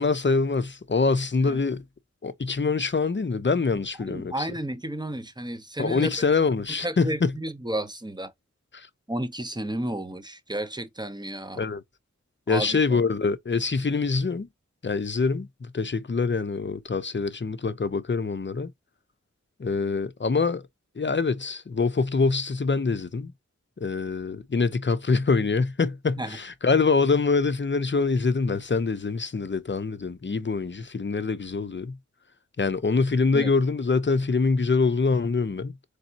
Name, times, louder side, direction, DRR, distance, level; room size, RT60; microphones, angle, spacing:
voice 1, 0.0-1.8 2.2-4.5 5.8-7.3 8.7-8.9 11.6-11.8 12.5-14.5 14.8-15.5 15.7-18.7 19.6-20.7 21.0-23.3 23.8-32.0 32.6-35.7, left 4 dB, 40° left, 0.6 m, -25 dB
voice 2, 4.1-6.1 6.8-8.3 9.1-11.6 12.5-13.0 26.2-26.4 33.3-33.5, right 1 dB, 15° right, 0.7 m, -32 dB
4.1 x 3.4 x 2.8 m
wide cardioid pair, 50°, 30 cm